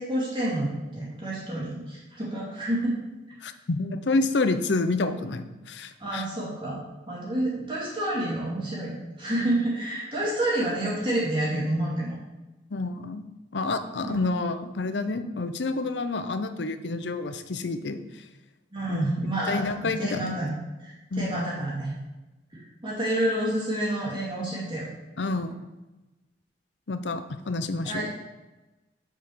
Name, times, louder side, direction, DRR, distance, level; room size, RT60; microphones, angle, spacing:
voice 1, 0.0-2.9 6.0-6.8 7.1-12.1 14.0-14.2 18.7-19.7 20.0-20.5 20.8-21.9 22.5-24.8 27.9-28.1, right 1 dB, 30° right, -6 dB, 2.6 m, -29 dB
voice 2, 3.4-6.3 12.7-13.2 13.5-18.0 18.9-19.0 19.5-20.4 21.1-21.4 25.2-25.6 26.9-28.1, left 3 dB, 85° left, 10 dB, 0.7 m, -28 dB
6.6 x 6.1 x 7.2 m, 1.1 s
head